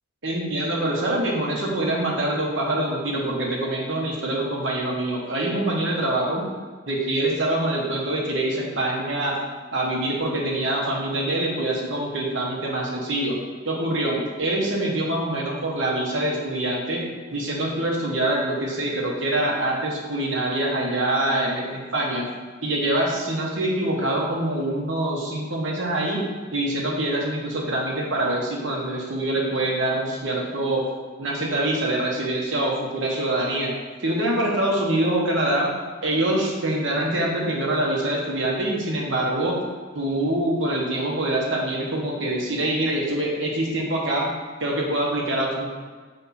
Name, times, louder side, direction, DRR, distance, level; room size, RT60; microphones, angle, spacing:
voice 1, 0.2-6.5 6.9-9.4 9.7-13.3 13.6-17.0 17.3-22.3 22.6-26.2 26.5-30.8 31.2-33.7 34.0-35.7 36.0-39.6 39.9-44.3 44.6-45.7, right 1 dB, 60° right, -2 dB, 1.2 m, -25 dB
6.9 x 3.5 x 4.2 m, 1.5 s
head